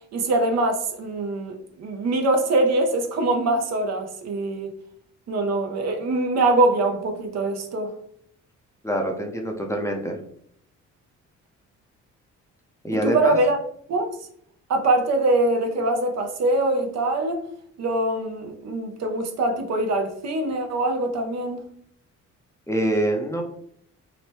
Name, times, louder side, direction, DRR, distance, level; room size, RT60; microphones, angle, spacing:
voice 1, 0.1-4.7 5.3-7.9 13.0-13.6 13.9-14.2 14.7-17.4 17.8-21.6, right 2 dB, 60° right, 0.6 m, -23 dB
voice 2, 8.8-10.2 12.8-13.4 22.7-23.4, right 1 dB, 10° left, 0.5 m, -25 dB
2.8 x 2.1 x 3.2 m
cardioid pair, 90°, 30 cm